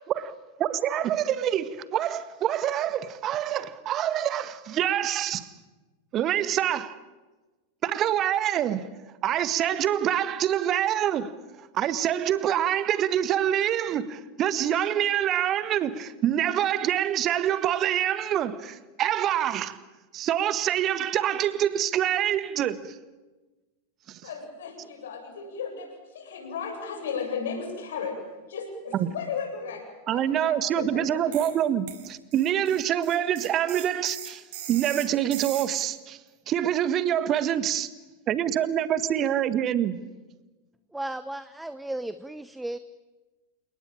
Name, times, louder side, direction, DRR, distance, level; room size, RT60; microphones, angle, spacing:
voice 1, 0.6-5.5 6.1-7.0 7.8-8.9 9.2-11.3 11.6-19.8 20.1-23.0 24.1-24.2 29.0-29.1 30.1-36.2 36.5-37.9 38.3-40.0, right 10 dB, 30° right, 1.6 m, -26 dB
voice 2, 24.2-28.2 28.5-29.8 30.1-31.5, left 6 dB, 60° left, 7.9 m, -35 dB
sound 1, 31.3-31.6 31.9-35.9, right 11 dB, 50° right, 4.3 m, -39 dB
voice 3, 40.9-42.8, right 1 dB, 5° right, 1.0 m, -34 dB
29.5 x 19.0 x 8.9 m
figure-of-eight pair, 90°, 0 cm